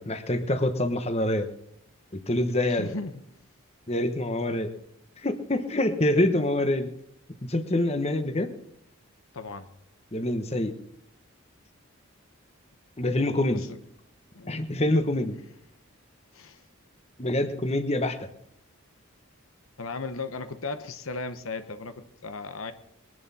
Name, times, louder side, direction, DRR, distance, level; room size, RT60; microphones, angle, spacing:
voice 1, 0.0-1.5 2.1-2.9 3.9-4.7 5.2-6.9 7.4-8.5 10.1-10.7 13.0-13.6 14.5-15.4 17.2-18.3, left 1 dB, 30° left, 8 dB, 1.1 m, -26 dB
voice 2, 2.7-3.2 9.3-9.7 13.5-13.8 14.3-14.6 16.3-16.6 19.8-22.7, left 3 dB, 80° left, 10 dB, 0.9 m, -36 dB
21.5 x 11.0 x 4.2 m, 0.75 s
head